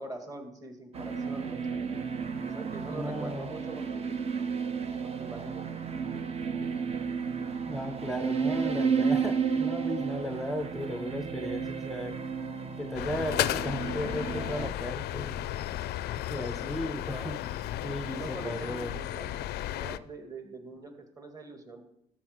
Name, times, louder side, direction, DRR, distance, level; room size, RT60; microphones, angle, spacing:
voice 1, 0.0-1.9 2.4-4.0 5.0-5.8 16.8-17.3 18.0-19.4 19.7-21.8, right 2 dB, 20° right, 4 dB, 1.9 m, -43 dB
sound 1, 0.9-14.7, right 6 dB, 35° right, 1.0 m, -32 dB
voice 2, 2.9-3.5 7.7-12.2 12.8-15.5 16.3-17.4 17.8-19.0, left 1 dB, ahead, 8 dB, 0.6 m, -35 dB
sound 2, 12.9-20.0, left 13 dB, 70° left, 0.4 m, -34 dB
12.5 x 4.3 x 6.4 m, 0.74 s
cardioid pair, 110°, 17 cm